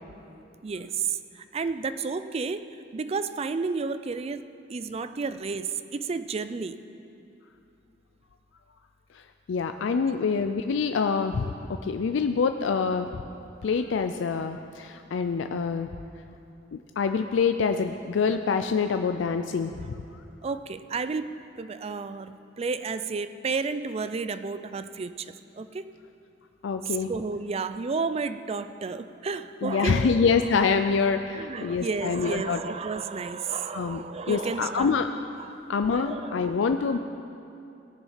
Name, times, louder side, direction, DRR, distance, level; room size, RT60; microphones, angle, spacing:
voice 1, 0.6-6.9 9.9-10.0 20.4-25.9 26.9-30.3 31.3-34.9 35.4-35.5 35.9-37.0, right 4 dB, 35° right, 12 dB, 0.4 m, -32 dB
voice 2, 9.1-11.5 11.8-13.2 13.6-15.9 16.7-20.0 26.6-27.1 29.6-32.6 33.7-35.1 35.7-37.0, left 5 dB, 75° left, 7 dB, 0.4 m, -26 dB
17.5 x 7.2 x 5.6 m, 2.7 s
head